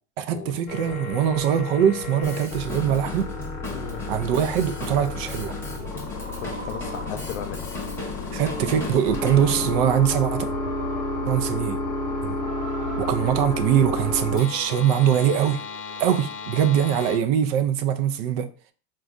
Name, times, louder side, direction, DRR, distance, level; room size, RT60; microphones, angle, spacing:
voice 1, 0.2-3.3 4.1-5.6 8.3-10.5 11.3-11.8 12.2-12.4 13.0-15.6 16.0-18.5, right 9 dB, 55° right, 0.5 m, -22 dB
sound 1, 0.7-17.2, left 2 dB, 45° left, 0.9 m, -31 dB
Drum kit, 2.2-9.7, left 2 dB, 5° left, 0.8 m, -37 dB
voice 2, 3.7-4.1 6.3-7.7, left 7 dB, 80° left, 0.7 m, -36 dB
sound 2, 3.9-17.2, right 3 dB, 25° right, 0.9 m, -44 dB
3.9 x 2.3 x 2.4 m
supercardioid pair, 125°, 36 cm